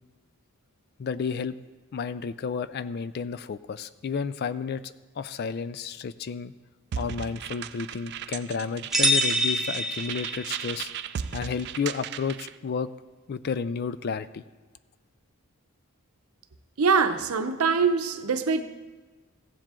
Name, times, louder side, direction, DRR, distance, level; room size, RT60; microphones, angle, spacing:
voice 1, 1.0-1.5 1.9-6.5 7.0-10.9 11.3-12.9 13.3-14.4, left 5 dB, 45° left, 0.3 m, -31 dB
sound 1, 6.9-12.5, right 9 dB, 50° right, 0.3 m, -36 dB
sound 2, 8.9-10.7, equal, ahead, 0.6 m, -25 dB
voice 2, 16.8-18.6, right 5 dB, 80° right, 0.7 m, -23 dB
15.5 x 7.4 x 3.7 m
head